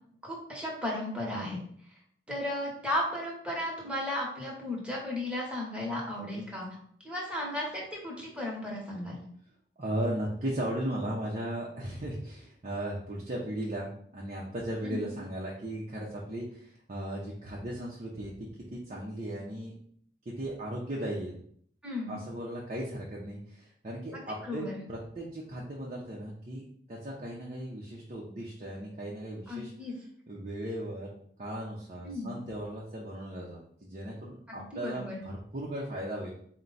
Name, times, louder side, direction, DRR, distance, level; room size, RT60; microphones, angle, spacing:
voice 1, 0.2-1.6 2.3-6.7 7.0-9.2 14.8-15.1 21.8-22.2 24.1-24.8 29.5-29.9 32.0-32.4 34.5-35.2, left 1 dB, 5° right, -3 dB, 1.0 m, -35 dB
voice 2, 9.8-19.7 20.3-21.4 22.1-26.6 26.9-29.7 30.3-31.1 31.4-36.3, right 1 dB, 40° right, -3 dB, 0.7 m, -37 dB
4.4 x 2.2 x 3.9 m, 0.63 s
head